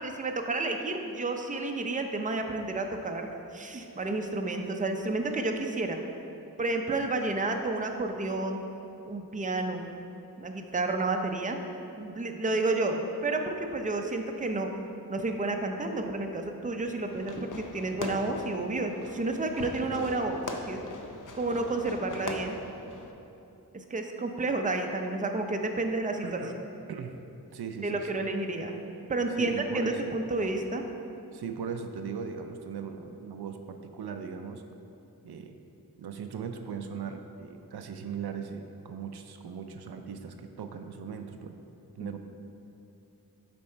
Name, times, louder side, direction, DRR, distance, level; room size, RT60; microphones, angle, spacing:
voice 1, 0.0-6.0 6.6-8.6 9.0-9.9 10.4-11.6 12.0-14.7 15.1-20.8 21.3-22.6 23.7-26.2 27.8-28.8 29.1-30.8, right 2 dB, 20° right, 4 dB, 0.5 m, -31 dB
Fireworks, 17.1-23.1, left 3 dB, 55° left, 0.7 m, -40 dB
voice 2, 26.2-26.6 26.9-27.2 27.5-28.2 29.4-30.1 31.3-34.6 35.2-35.6 36.0-41.6 42.0-42.2, right 6 dB, 80° right, 6 dB, 0.5 m, -39 dB
7.1 x 4.3 x 4.4 m, 2.8 s
wide cardioid pair, 60°, 38 cm